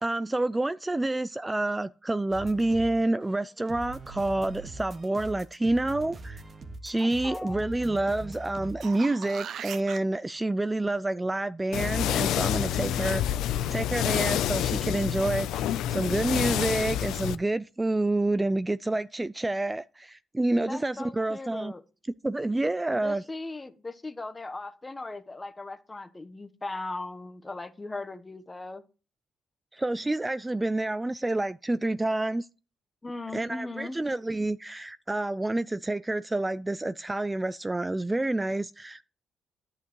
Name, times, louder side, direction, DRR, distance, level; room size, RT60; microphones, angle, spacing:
voice 1, 0.0-6.4 6.8-13.2 13.7-15.6 15.9-21.7 22.2-23.2 29.7-32.5 33.3-39.0, right 2 dB, 15° right, 0.3 m, -28 dB
sound 1, 2.3-3.0 3.2-9.0, right 2 dB, 40° right, 1.6 m, -42 dB
voice 2, 7.0-7.8 12.8-13.2 20.6-21.8 23.0-28.8 33.0-34.0, left 2 dB, 20° left, 1.1 m, -38 dB
sound 2, 8.5-10.0 14.8-14.9, right 9 dB, 65° right, 0.5 m, -39 dB
sound 3, 11.7-17.4, left 11 dB, 85° left, 0.5 m, -28 dB
11.0 x 8.3 x 3.1 m
cardioid pair, 90°, 0 cm